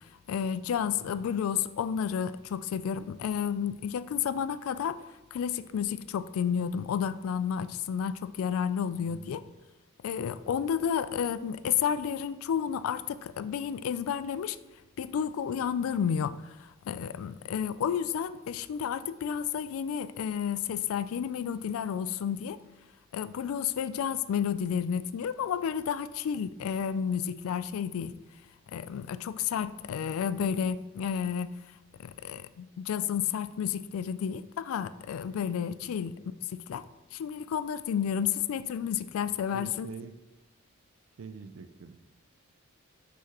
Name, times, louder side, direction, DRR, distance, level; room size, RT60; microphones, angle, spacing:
voice 1, 0.3-5.0 5.3-9.4 10.0-14.6 15.0-16.3 16.9-22.6 23.1-28.1 28.7-31.5 32.0-36.1 36.5-36.8 37.1-39.9, left 8 dB, 80° left, 15 dB, 0.3 m, -31 dB
voice 2, 1.0-1.4 9.0-9.5 35.8-35.9 39.3-40.2 41.2-42.1, right 5 dB, 75° right, 10 dB, 0.4 m, -46 dB
6.0 x 5.8 x 2.9 m, 0.99 s
head